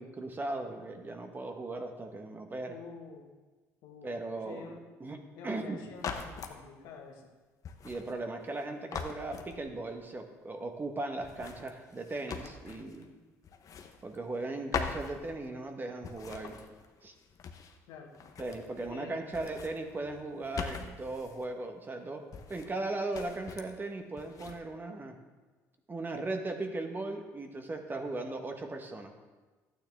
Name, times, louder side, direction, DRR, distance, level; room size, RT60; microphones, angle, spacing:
voice 1, 0.0-2.8 4.0-5.2 5.4-5.9 7.8-13.1 14.0-16.6 17.0-17.1 18.4-25.1 25.9-29.1, right 2 dB, 25° right, 5 dB, 1.3 m, -38 dB
voice 2, 2.7-3.3 3.8-4.9 5.4-7.3 17.9-18.1 18.8-19.4, left 5 dB, 75° left, 1 dB, 1.7 m, -48 dB
sound 1, 5.9-6.6 7.6-8.6 8.9-10.0 11.2-13.1 13.4-14.4 14.7-15.7 16.0-17.8 18.1-19.0 19.3-21.5 22.3-22.8 23.1-23.8 24.2-24.6, left 6 dB, 50° left, 1.0 m, -42 dB
12.0 x 9.2 x 3.5 m, 1.3 s
supercardioid pair, 70°, 7 cm